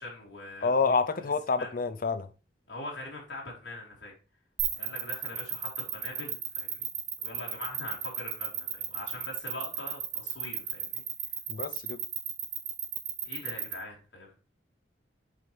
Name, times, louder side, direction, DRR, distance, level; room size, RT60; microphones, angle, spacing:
voice 1, 0.0-0.9 1.6-1.7 2.7-4.1 4.7-6.9 7.2-11.0 13.2-14.4, left 2 dB, 80° left, 3.0 m, -42 dB
voice 2, 0.6-2.3 11.5-12.0, left 4 dB, 50° left, 0.6 m, -28 dB
sound 1, 4.6-13.7, right 10 dB, 50° right, 1.9 m, -33 dB
7.6 x 5.4 x 3.3 m
head